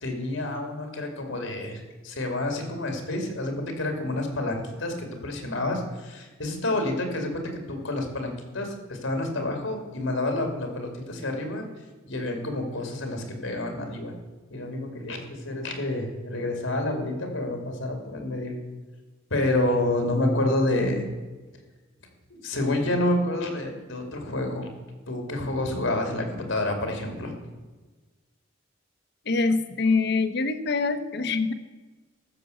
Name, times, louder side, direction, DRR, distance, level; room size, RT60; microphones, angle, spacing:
voice 1, 0.0-11.6 12.1-14.1 14.5-18.5 19.3-21.1 22.3-24.7 25.1-27.3, left 1 dB, 80° left, 4 dB, 2.7 m, -28 dB
voice 2, 29.2-31.5, left 4 dB, 55° left, 11 dB, 0.9 m, -24 dB
14.5 x 6.8 x 6.7 m, 1.3 s
head